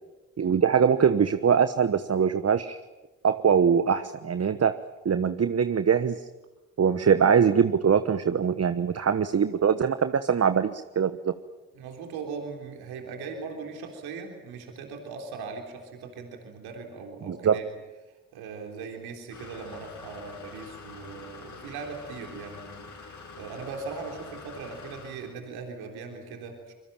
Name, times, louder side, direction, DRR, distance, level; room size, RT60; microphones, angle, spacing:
voice 1, 0.4-2.8 3.2-4.7 5.0-6.2 6.8-11.3 17.3-17.6, right 7 dB, 40° right, 11 dB, 1.2 m, -22 dB
voice 2, 11.7-17.7 18.1-26.7, right 4 dB, 80° right, 3 dB, 3.7 m, -39 dB
sound 1, 19.3-25.3, left 4 dB, 50° left, 6.8 m, -45 dB
25.0 x 22.5 x 9.0 m, 1.2 s
hypercardioid pair, 45°, 38 cm